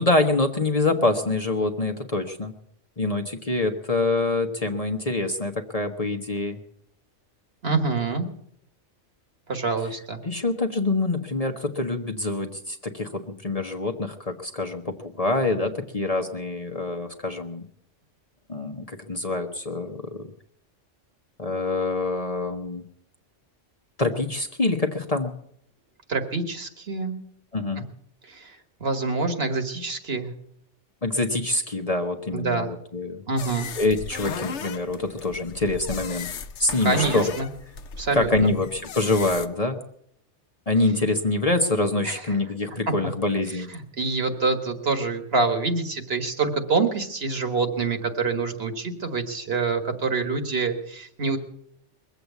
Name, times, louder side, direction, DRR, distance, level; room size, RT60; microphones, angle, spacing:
voice 1, 0.0-2.5 3.0-6.6 10.2-17.6 18.5-20.2 21.4-22.8 24.0-25.3 27.5-27.8 31.0-33.2 33.8-36.3 36.6-37.3 38.1-39.8 40.7-43.7, left 2 dB, 35° left, 4 dB, 1.0 m, -25 dB
voice 2, 7.6-8.3 9.5-10.2 26.1-27.2 28.2-30.3 32.3-32.7 33.3-33.7 36.8-37.5 38.0-38.5 42.0-42.2 42.9-43.0 43.7-51.4, right 4 dB, 55° right, 6 dB, 1.7 m, -26 dB
sound 1, 33.4-39.5, left 6 dB, 70° left, 1.1 m, -36 dB
22.0 x 8.1 x 8.1 m, 0.71 s
omnidirectional pair, 1.3 m